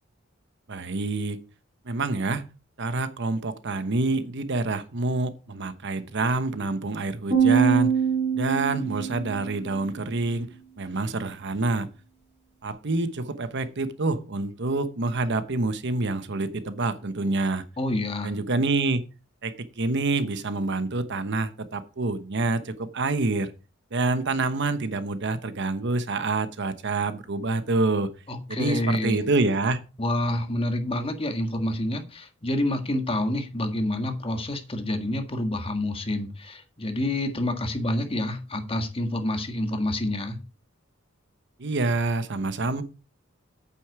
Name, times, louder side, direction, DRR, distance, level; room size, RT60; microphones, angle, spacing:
voice 1, 0.7-1.4 1.8-2.4 2.8-7.9 8.3-10.5 10.8-11.9 12.6-17.6 18.2-19.0 19.4-23.5 23.9-28.1 28.5-29.8 41.6-42.8, right 3 dB, 60° right, 12 dB, 1.0 m, -27 dB
sound 1, 7.3-9.7, right 7 dB, 35° right, 4.8 m, -23 dB
voice 2, 17.8-18.3 28.3-29.2 30.0-40.4, left 1 dB, 30° left, 6 dB, 1.7 m, -28 dB
8.8 x 8.4 x 4.8 m, 0.33 s
head